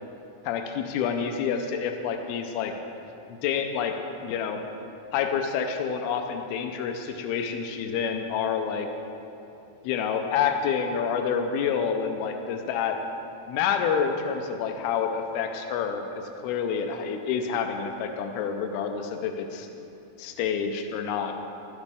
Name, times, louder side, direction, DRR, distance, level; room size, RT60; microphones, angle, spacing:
voice 1, 0.4-2.7 3.4-4.0 4.2-4.6 5.1-8.9 9.8-13.0 13.5-19.7 20.2-21.3, left 7 dB, 85° left, 5 dB, 2.5 m, -28 dB
13.5 x 12.0 x 3.5 m, 2.8 s
omnidirectional pair, 4.5 m